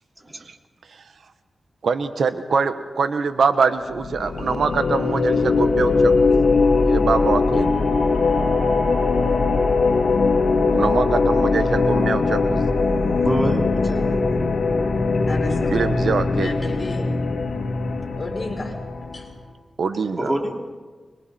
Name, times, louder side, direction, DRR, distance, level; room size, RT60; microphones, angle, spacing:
voice 1, 1.8-6.3 6.8-7.8 10.7-12.6 15.7-16.5 19.8-20.3, right 5 dB, 80° right, 10 dB, 1.2 m, -23 dB
sound 1, 3.9-19.3, left 4 dB, 90° left, 2.0 m, -20 dB
voice 2, 13.2-14.1 20.2-20.6, right 1 dB, 25° right, 1 dB, 3.1 m, -26 dB
voice 3, 15.3-15.8 16.3-17.1 18.2-18.7 19.1-19.3, left 2 dB, 40° left, -1 dB, 5.6 m, -32 dB
26.0 x 23.0 x 4.4 m, 1.4 s
wide cardioid pair, 75°, 0 cm